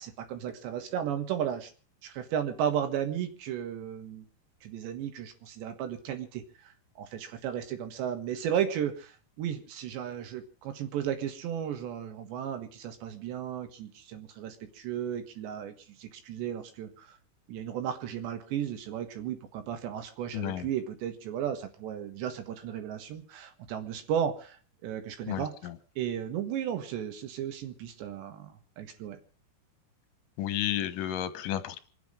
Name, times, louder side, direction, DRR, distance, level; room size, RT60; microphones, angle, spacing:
voice 1, 0.0-1.7 2.0-4.3 4.6-6.4 7.0-15.7 16.0-17.2 17.5-24.6 24.8-25.5 26.0-29.2, right 9 dB, 80° right, 7 dB, 4.0 m, -34 dB
voice 2, 20.3-20.7 25.3-25.8 30.4-31.8, left 11 dB, 65° left, 11 dB, 2.3 m, -32 dB
27.0 x 9.5 x 5.0 m, 0.39 s
omnidirectional pair, 5.0 m